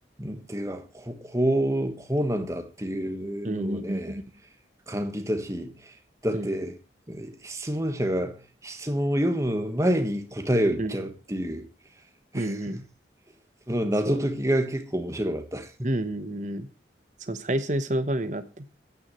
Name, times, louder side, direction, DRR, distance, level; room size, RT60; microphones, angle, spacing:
voice 1, 0.2-4.2 4.9-6.0 6.2-6.7 7.1-11.7 12.3-12.8 13.7-15.9, equal, 15° right, 1.4 m, -28 dB
voice 2, 3.4-4.2 6.3-6.5 10.8-11.0 12.3-12.8 14.1-14.2 15.8-16.7 17.3-18.9, right 1 dB, 40° right, 1.2 m, -29 dB
14.0 x 9.6 x 3.2 m
head